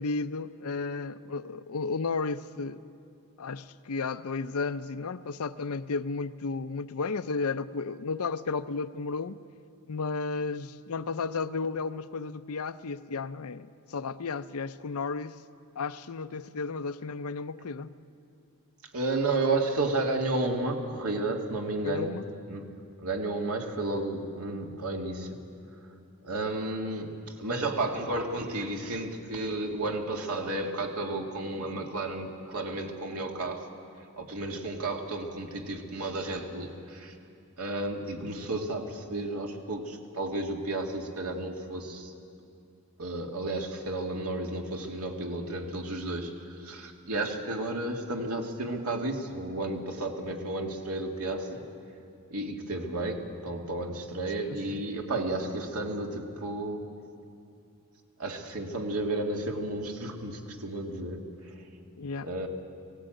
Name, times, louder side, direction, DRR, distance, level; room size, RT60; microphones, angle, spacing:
voice 1, 0.0-2.8 3.4-9.4 9.9-15.4 15.8-17.9 21.8-22.2 54.7-54.8 62.0-62.3, left 4 dB, 75° left, 13 dB, 0.6 m, -33 dB
voice 2, 18.9-22.2 22.5-22.7 23.0-25.4 26.2-27.1 27.4-33.7 34.1-37.1 37.6-42.1 43.0-51.6 52.3-56.9 58.2-61.6 62.2-62.5, right 2 dB, 80° right, 2 dB, 2.1 m, -32 dB
18.0 x 17.0 x 9.0 m, 2.5 s
head